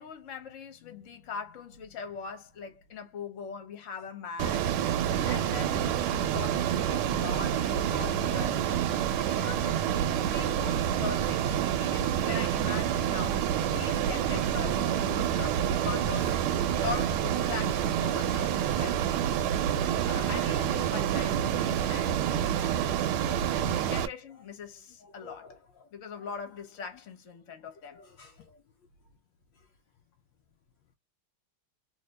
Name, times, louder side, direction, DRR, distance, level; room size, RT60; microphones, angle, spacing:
voice 1, 0.0-4.9 5.2-8.8 9.2-9.8 10.1-19.0 20.0-22.2 23.6-25.5 25.9-28.0, left 6 dB, 45° left, 1.2 m, -41 dB
Ocean, 4.4-24.1, right 10 dB, 80° right, 1.5 m, -28 dB
voice 2, 9.1-10.1 10.6-10.7 12.2-12.3 13.6-14.3 15.5-16.4 22.5-22.9 23.7-23.8 25.0-25.9 27.9-28.6, left 4 dB, 75° left, 1.1 m, -50 dB
3.2 x 2.9 x 3.2 m
omnidirectional pair, 2.4 m